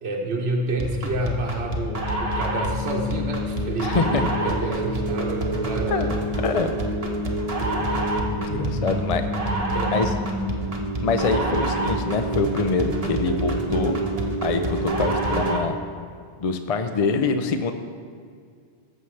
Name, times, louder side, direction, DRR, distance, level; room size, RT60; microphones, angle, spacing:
voice 1, 0.0-6.1 8.7-9.1 9.7-9.9, right 2 dB, 65° right, -1 dB, 1.1 m, -29 dB
sound 1, 0.8-15.7, right 1 dB, 35° right, 1.0 m, -26 dB
voice 2, 3.8-4.3 5.9-6.1 6.4-6.7 7.8-8.0 8.3-9.2 9.9-10.1 11.0-14.0 14.4-15.8 16.4-17.7, left 4 dB, 50° left, 7 dB, 0.4 m, -24 dB
17.0 x 7.4 x 3.2 m, 2.1 s
omnidirectional pair, 1.2 m